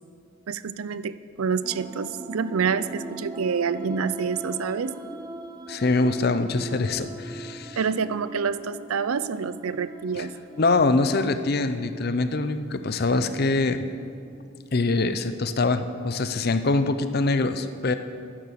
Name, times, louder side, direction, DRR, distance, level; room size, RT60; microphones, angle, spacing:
voice 1, 0.5-4.9 7.8-10.3, right 6 dB, 85° right, 15 dB, 0.5 m, -27 dB
sound 1, 1.6-15.1, right 1 dB, 20° right, 0.6 m, -41 dB
voice 2, 5.7-7.8 10.1-10.3 10.6-13.9 14.7-17.9, left 3 dB, 45° left, 10 dB, 0.6 m, -24 dB
11.0 x 10.5 x 6.7 m, 2.4 s
head